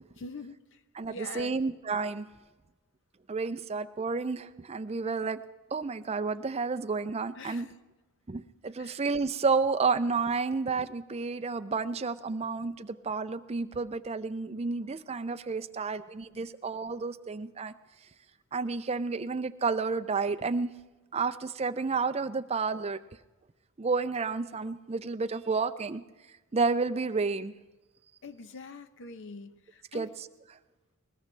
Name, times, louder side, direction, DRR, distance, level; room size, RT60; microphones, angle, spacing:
voice 1, 0.2-0.8 1.1-1.6 7.4-7.8 8.8-9.0 28.2-30.1, left 3 dB, 55° left, 11 dB, 0.8 m, -44 dB
voice 2, 1.0-2.3 3.3-5.4 5.7-7.7 8.3-17.7 18.5-20.7 21.1-23.0 23.8-26.0 26.5-27.5 29.9-30.1, right 4 dB, 30° right, 11 dB, 0.5 m, -31 dB
20.0 x 20.0 x 3.3 m, 1.1 s
head